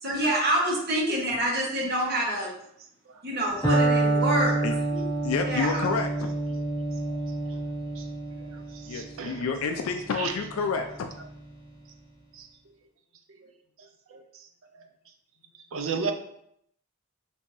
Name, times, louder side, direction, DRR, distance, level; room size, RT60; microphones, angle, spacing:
voice 1, 0.0-2.5 3.2-4.7 4.9-5.0 5.5-5.8, right 1 dB, 50° right, -3 dB, 1.0 m, -27 dB
Electric guitar, 3.6-11.5, right 2 dB, 20° left, 1.4 m, -28 dB
voice 2, 5.2-6.3 8.9-11.1, left 5 dB, 75° left, 6 dB, 0.3 m, -29 dB
voice 3, 8.4-9.5 10.1-10.4 12.3-12.5 14.1-14.2 15.7-16.1, right 5 dB, 70° right, 6 dB, 0.4 m, -33 dB
4.6 x 2.7 x 2.6 m, 0.72 s
head